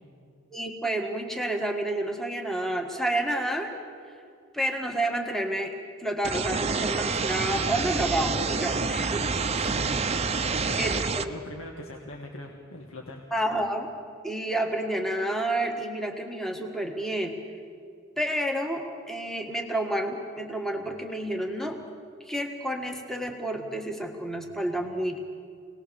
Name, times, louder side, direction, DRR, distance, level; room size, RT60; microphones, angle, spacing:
voice 1, 0.5-3.8 4.5-5.7 6.0-9.2 10.8-11.3 13.3-13.9 14.2-17.4 18.2-21.8 22.3-25.2, right 1 dB, ahead, 3 dB, 1.7 m, -29 dB
sound 1, 6.2-11.2, right 4 dB, 30° right, 0.8 m, -28 dB
voice 2, 8.7-9.2 9.5-9.9 10.5-13.2, left 1 dB, 80° left, 1 dB, 1.8 m, -41 dB
25.0 x 19.0 x 7.1 m, 2.3 s
head